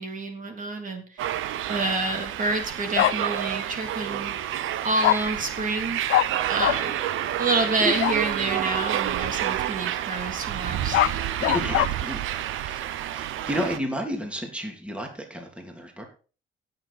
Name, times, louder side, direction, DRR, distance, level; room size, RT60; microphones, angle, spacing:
voice 1, 0.0-1.3 1.7-4.5 4.8-6.2 6.5-11.2 11.5-11.6, right 3 dB, 40° right, 3 dB, 3.2 m, -28 dB
sound 1, 1.2-13.8, right 12 dB, 85° right, 0.9 m, -29 dB
Bark, 3.0-3.1 5.0-5.2 6.1-6.3 6.6-6.8 8.0-8.2 10.7-11.9, left 16 dB, 85° left, 0.5 m, -21 dB
voice 2, 11.4-12.2 12.7-12.8 13.1-16.1, equal, 5° right, 2 dB, 3.0 m, -31 dB
16.5 x 7.1 x 4.3 m, 0.37 s
cardioid pair, 90°, 20 cm